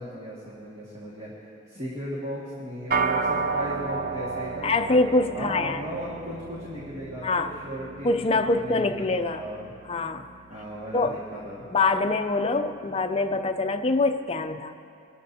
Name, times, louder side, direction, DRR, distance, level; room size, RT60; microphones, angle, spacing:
voice 1, 0.0-5.0 5.3-9.7 10.5-11.6, equal, 35° right, -6 dB, 2.0 m, -37 dB
sound 1, 2.9-12.4, right 4 dB, 50° right, 0.6 m, -33 dB
voice 2, 4.6-5.8 7.2-7.5 8.0-9.4 9.9-10.3 10.9-11.2 11.7-14.8, left 3 dB, 30° left, 7 dB, 0.5 m, -24 dB
23.5 x 12.5 x 2.8 m, 2.5 s
head